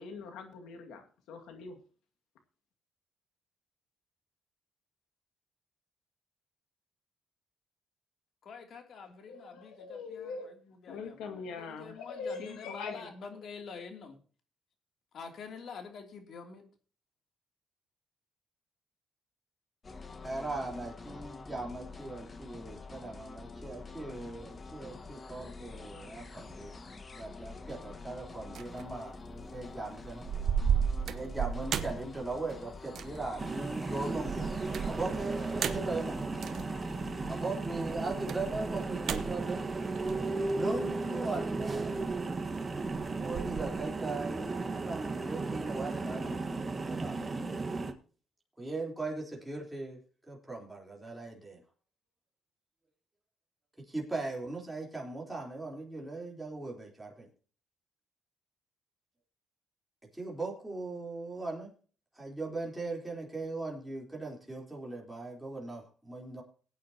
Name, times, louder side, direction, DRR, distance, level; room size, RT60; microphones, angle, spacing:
voice 1, 0.0-1.8 9.3-10.6 10.9-13.1, left 4 dB, 90° left, 5 dB, 2.1 m, -42 dB
voice 2, 8.4-14.2 15.1-16.6, left 5 dB, 65° left, 4 dB, 2.9 m, -47 dB
sound 1, 19.8-37.5, left 3 dB, 35° left, 1.4 m, -47 dB
voice 3, 20.2-26.8 27.1-30.2 31.1-34.5 34.9-36.2 37.3-39.6 40.6-42.6 43.2-46.4 46.8-47.2 48.6-50.0 50.3-51.6 53.9-57.3 60.2-61.7 62.2-66.4, right 3 dB, 10° right, -2 dB, 3.9 m, -39 dB
sound 2, 28.6-28.9 29.3-29.7 30.0-32.6 32.9-33.3 34.1-36.7 37.9-40.6 41.7-42.6 42.9-43.8, right 7 dB, 65° right, 1.1 m, -34 dB
sound 3, 33.4-47.9, right 3 dB, 30° right, 1.5 m, -35 dB
19.0 x 9.3 x 2.9 m, 0.40 s
cardioid pair, 90°, 0 cm